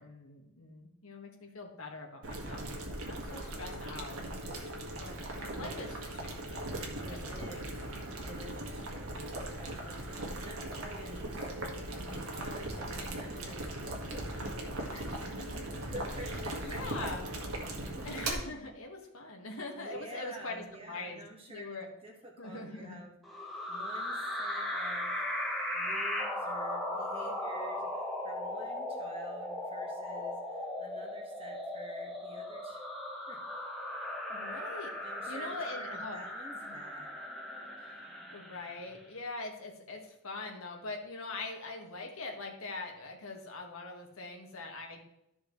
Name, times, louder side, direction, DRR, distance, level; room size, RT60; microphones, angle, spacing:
voice 1, 0.0-8.0 14.3-16.0 16.6-17.3 18.0-21.2 21.5-21.9 22.4-23.0 34.3-34.9 35.3-36.2 36.7-36.8 37.6-38.0 38.3-45.0, left 2 dB, 85° left, 2 dB, 1.8 m, -43 dB
Boiling, 2.2-18.3, right 1 dB, 85° right, 1.9 m, -39 dB
voice 2, 7.0-7.8 8.2-13.8 14.1-14.3 15.7-17.2 17.6-18.1 19.8-23.1 23.7-25.2 25.7-32.8 33.3-33.4 35.0-37.2, right 1 dB, 25° right, -1 dB, 1.7 m, -49 dB
sound 1, 23.2-38.9, left 1 dB, ahead, 1.3 m, -37 dB
13.5 x 6.3 x 3.2 m, 0.82 s
head